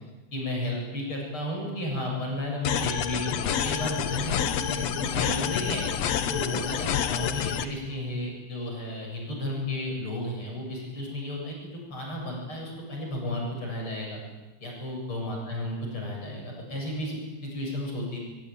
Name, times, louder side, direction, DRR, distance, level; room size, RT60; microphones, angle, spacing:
voice 1, 0.3-5.9 6.3-14.2 14.6-18.2, left 1 dB, 30° left, -1 dB, 8.7 m, -33 dB
sound 1, 2.6-7.6, left 9 dB, 65° left, 1.6 m, -28 dB
24.0 x 22.5 x 9.5 m, 1.1 s
omnidirectional pair, 4.5 m